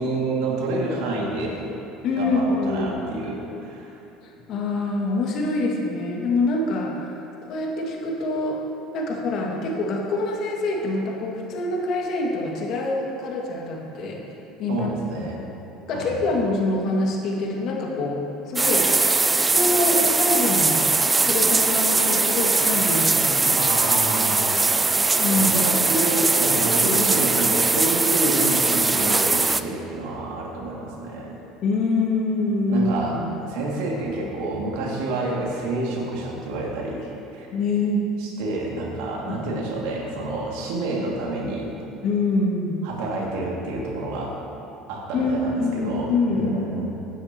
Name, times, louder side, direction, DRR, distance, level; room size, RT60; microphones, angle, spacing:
voice 1, 0.0-1.6 2.2-3.9 14.7-15.4 15.9-16.2 23.6-24.6 25.3-31.4 32.7-33.2 33.4-37.5 38.2-41.7 42.8-44.4 44.9-46.8, right 2 dB, 75° right, -2 dB, 2.3 m, -28 dB
voice 2, 2.0-2.9 4.2-7.1 7.5-8.6 8.9-14.2 14.6-14.9 15.2-15.3 15.9-18.9 19.5-20.9 21.2-23.7 25.2-25.5 31.6-33.2 37.5-38.0 39.3-39.4 42.0-42.8 45.1-46.5, left 2 dB, 60° left, -2 dB, 2.1 m, -25 dB
sound 1, 18.6-29.6, right 3 dB, 20° right, 0.4 m, -20 dB
16.0 x 9.8 x 3.0 m, 2.9 s
hypercardioid pair, 75°, 0 cm